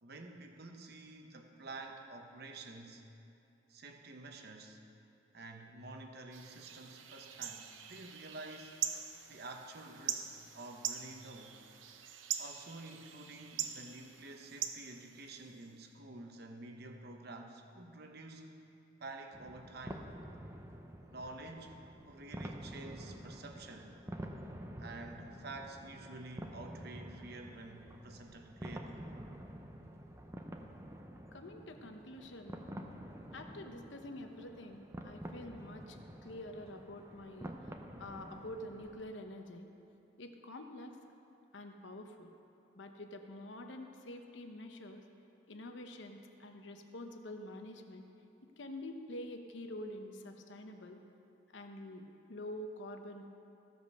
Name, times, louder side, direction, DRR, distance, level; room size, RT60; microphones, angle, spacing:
voice 1, 0.0-3.0 3.7-4.8 5.3-8.8 9.3-11.6 12.4-18.5 19.0-20.1 21.0-21.8 22.1-24.0 24.8-29.0 33.0-33.1, right 2 dB, 55° right, 4 dB, 0.9 m, -49 dB
sound 1, 6.3-15.7, right 9 dB, 85° right, 0.7 m, -43 dB
sound 2, 19.3-39.0, right 1 dB, 15° right, 0.6 m, -48 dB
voice 2, 31.3-32.7 33.3-39.7 40.2-41.0 41.5-42.3 42.7-45.0 45.5-48.0 48.4-51.0 51.5-53.3, left 1 dB, 70° left, 5 dB, 0.9 m, -47 dB
15.0 x 5.3 x 6.6 m, 2.7 s
head